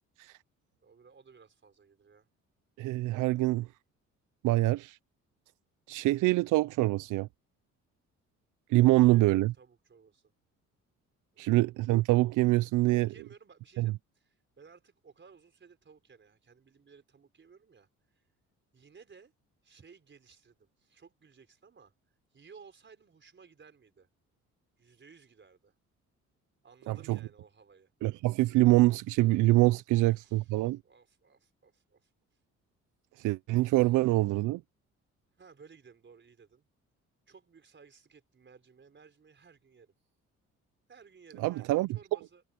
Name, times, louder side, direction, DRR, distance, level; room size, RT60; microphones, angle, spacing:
voice 1, 0.8-2.3 8.9-10.3 11.3-11.8 12.9-18.2 18.7-19.3 19.6-21.9 22.3-24.1 24.8-25.7 26.6-27.9 29.9-32.1 33.6-33.9 35.4-36.7 37.3-39.9 40.9-42.4, right 5 dB, 40° right, 4.6 m, -57 dB
voice 2, 2.8-3.7 4.4-5.0 5.9-7.3 8.7-9.5 11.4-13.1 13.8-13.9 26.9-27.2 28.0-30.8 33.2-34.6 41.4-42.2, right 18 dB, 90° right, 0.6 m, -25 dB
cardioid pair, 90°, 30 cm